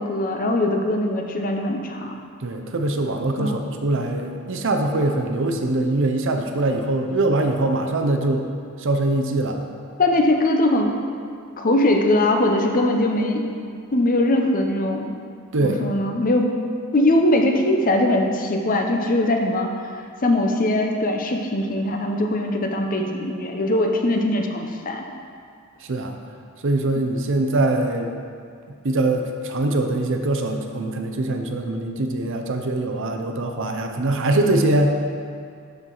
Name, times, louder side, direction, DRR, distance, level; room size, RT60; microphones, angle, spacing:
voice 1, 0.0-2.1 3.4-3.6 10.0-11.0 11.6-13.5 13.9-15.2 15.6-16.5 16.9-19.7 20.2-25.1 26.9-27.0, left 1 dB, 40° left, 3 dB, 0.7 m, -21 dB
voice 2, 2.4-8.5 8.8-9.6 15.5-15.8 25.8-26.2 26.6-28.1 28.8-34.9, right 2 dB, 65° right, 4 dB, 0.7 m, -22 dB
12.0 x 4.6 x 3.9 m, 2.3 s
head